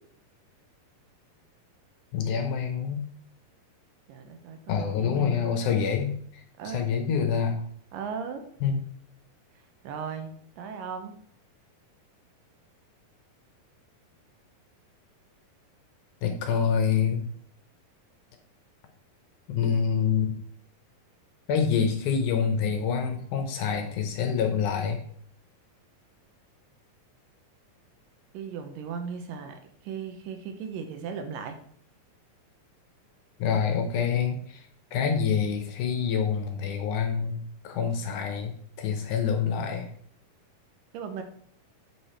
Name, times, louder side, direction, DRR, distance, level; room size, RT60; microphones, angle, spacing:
voice 1, 2.1-3.0 4.7-7.6 8.6-8.8 16.2-17.3 19.5-20.3 21.5-25.0 33.4-34.6 34.9-39.9, left 7 dB, 75° left, 5 dB, 2.1 m, -26 dB
voice 2, 4.1-5.4 6.6-6.9 7.9-8.5 9.8-11.1 28.3-31.6 40.9-41.2, right 6 dB, 80° right, 6 dB, 2.5 m, -37 dB
8.0 x 4.8 x 4.3 m, 0.62 s
omnidirectional pair, 4.0 m